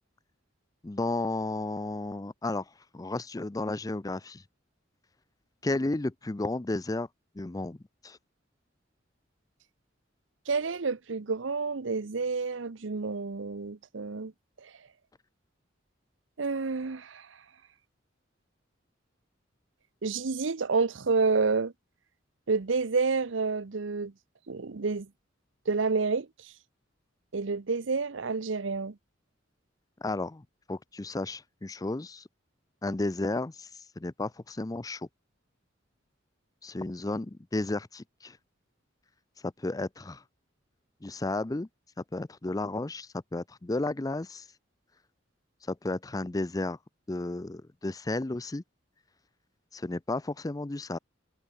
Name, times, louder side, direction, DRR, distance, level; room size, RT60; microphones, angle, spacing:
voice 1, 0.8-2.7 2.9-4.4 5.6-7.1 7.4-7.8 8.0-8.2 30.0-30.4 30.7-32.2 32.8-33.7 34.0-35.1 36.6-38.4 39.4-40.2 41.0-41.7 42.0-44.5 45.7-46.8 47.1-48.6 49.7-51.0, left 2 dB, 20° left, 0.5 m, -33 dB
voice 2, 10.5-14.3 16.4-17.3 20.0-21.7 22.5-24.1 24.5-25.1 25.7-26.3 27.3-28.9, right 4 dB, 80° right, 0.8 m, -29 dB
head